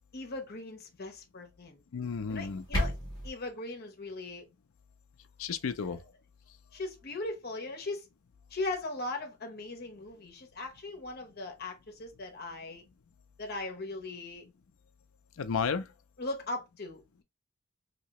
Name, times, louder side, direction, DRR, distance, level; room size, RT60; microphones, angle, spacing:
voice 1, 0.1-1.8 2.3-2.9 3.2-4.4 5.8-6.0 6.7-8.1 8.5-12.8 13.4-14.5 16.2-17.2, left 2 dB, 50° left, 0.9 m, -39 dB
voice 2, 1.9-2.6 5.4-6.0 15.4-15.9, left 5 dB, 80° left, 0.5 m, -32 dB
sound 1, 2.3-3.3, left 1 dB, 20° left, 1.2 m, -32 dB
2.8 x 2.8 x 2.9 m
head